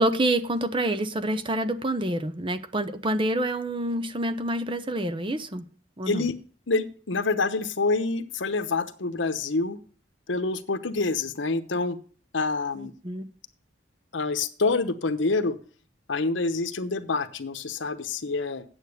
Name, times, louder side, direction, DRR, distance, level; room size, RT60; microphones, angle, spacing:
voice 1, 0.0-5.6 6.0-6.2 12.7-13.3, right 1 dB, 25° right, 12 dB, 0.7 m, -27 dB
voice 2, 6.1-6.4 6.7-9.8 10.3-12.0 12.3-12.9 14.1-15.6 16.1-18.6, left 3 dB, 90° left, 11 dB, 1.0 m, -27 dB
9.1 x 7.7 x 6.5 m, 0.42 s
head